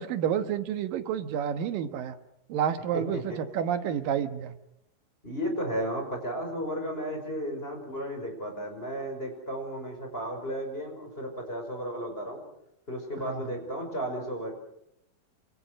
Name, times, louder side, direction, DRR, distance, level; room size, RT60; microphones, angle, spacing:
voice 1, 0.0-2.2 2.5-4.6 13.2-13.4, right 9 dB, 70° right, 9 dB, 2.9 m, -30 dB
voice 2, 2.9-3.4 5.2-12.4 12.9-14.5, equal, 15° left, 2 dB, 5.4 m, -34 dB
27.5 x 26.5 x 6.4 m, 0.78 s
omnidirectional pair, 4.2 m